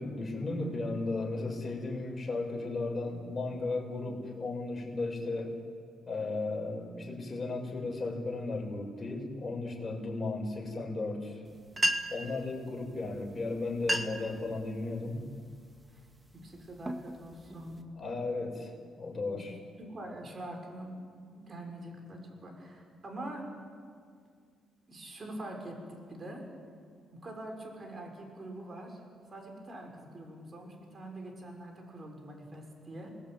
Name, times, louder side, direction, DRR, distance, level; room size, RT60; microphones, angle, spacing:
voice 1, 0.0-5.6 6.1-11.4 12.1-15.2 17.9-19.5, left 3 dB, 25° left, 0 dB, 6.4 m, -35 dB
sound 1, 11.5-11.6 11.7-12.3 13.2-13.4 13.7-14.3 14.8-15.2 15.8-16.0 16.6-17.8, right 1 dB, 15° right, 2.0 m, -33 dB
voice 2, 16.3-17.9 19.3-19.4 19.8-20.9 21.3-23.5 24.9-26.5 27.1-29.0 29.3-33.1, right 1 dB, 35° right, 3 dB, 5.9 m, -44 dB
27.0 x 19.5 x 9.2 m, 2.1 s
cardioid pair, 90°, 0 cm